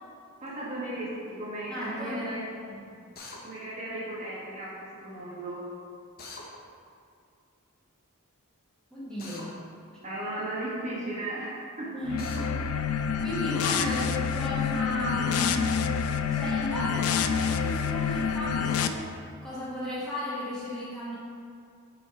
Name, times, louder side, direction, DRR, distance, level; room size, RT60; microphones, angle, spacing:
voice 1, 0.4-2.5 3.4-5.6 10.0-11.9 13.6-14.0, right 1 dB, 30° right, -7 dB, 1.4 m, -36 dB
voice 2, 1.7-2.4 2.7-2.8 8.9-9.6 11.9-12.8 13.2-15.9 16.3-19.1 19.4-21.2, left 1 dB, 5° left, -10 dB, 1.0 m, -35 dB
Drill, 3.2-3.4 6.2-6.5 9.2-9.5 12.2-12.4, left 3 dB, 45° left, 0.8 m, -42 dB
sound 1, 12.1-18.9, left 7 dB, 85° left, 0.3 m, -27 dB
5.6 x 4.4 x 4.6 m, 2.3 s
head